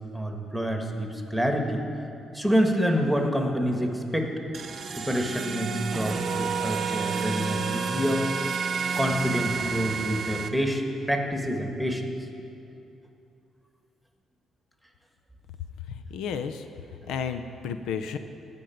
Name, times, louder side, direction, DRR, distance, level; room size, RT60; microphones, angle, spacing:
voice 1, 0.1-1.9 2.3-4.3 5.0-8.2 8.9-12.1, equal, ahead, 2 dB, 1.6 m, -27 dB
sound 1, 4.5-10.5, right 5 dB, 45° right, 0.8 m, -30 dB
voice 2, 16.1-16.6 17.1-18.2, left 6 dB, 85° left, 9 dB, 0.5 m, -32 dB
15.0 x 5.4 x 9.2 m, 2.7 s
cardioid pair, 90°, 0 cm